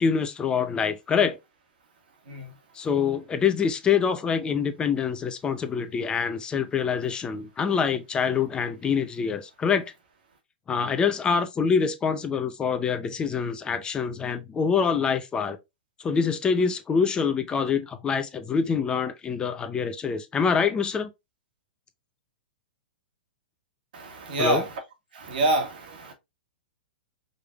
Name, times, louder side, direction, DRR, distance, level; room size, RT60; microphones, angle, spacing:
voice 1, 0.0-1.4 2.7-9.9 10.7-15.6 16.0-21.1 24.4-24.6, left 6 dB, 15° left, 0.5 m, -25 dB
voice 2, 23.9-24.8 25.1-26.1, right 2 dB, 70° right, 1.7 m, -27 dB
5.1 x 3.3 x 2.3 m
hypercardioid pair, 130°, 5 cm